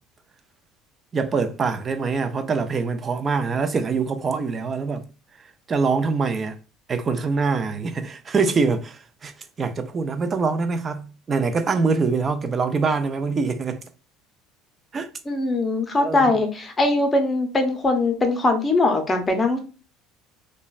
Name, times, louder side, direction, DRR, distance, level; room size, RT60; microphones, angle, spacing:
voice 1, 1.1-5.0 5.7-6.6 6.9-9.3 9.6-13.8 14.9-15.1 16.0-16.4, right 4 dB, 25° right, 0.4 m, -24 dB
voice 2, 15.3-19.6, left 2 dB, 20° left, 0.7 m, -21 dB
3.1 x 2.1 x 2.3 m
cardioid pair, 125°, 0 cm